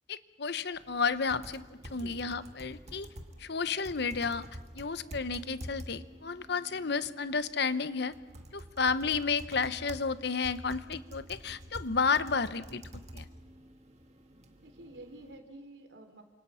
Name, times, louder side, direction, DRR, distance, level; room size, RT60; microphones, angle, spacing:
voice 1, 0.1-3.1 3.4-4.4 4.7-8.1 8.5-12.8 13.1-13.2, left 5 dB, 65° left, 13 dB, 1.0 m, -32 dB
sound 1, 0.7-15.4, equal, 40° right, 2.1 m, -48 dB
voice 2, 14.6-16.2, right 1 dB, 80° right, 6 dB, 3.3 m, -49 dB
29.5 x 26.5 x 5.7 m, 1.2 s
head